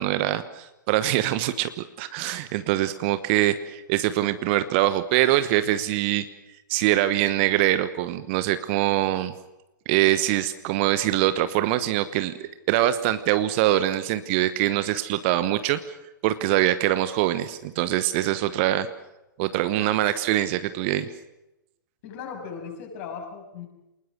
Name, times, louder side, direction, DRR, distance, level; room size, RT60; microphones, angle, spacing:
voice 1, 0.0-6.2 6.7-9.3 9.9-12.3 12.7-15.8 16.2-18.9 19.4-21.1, right 14 dB, 35° right, 12 dB, 1.1 m, -23 dB
voice 2, 22.0-23.6, left 6 dB, 40° left, 3 dB, 7.1 m, -37 dB
28.5 x 20.0 x 6.3 m, 0.93 s
figure-of-eight pair, 115°, 11 cm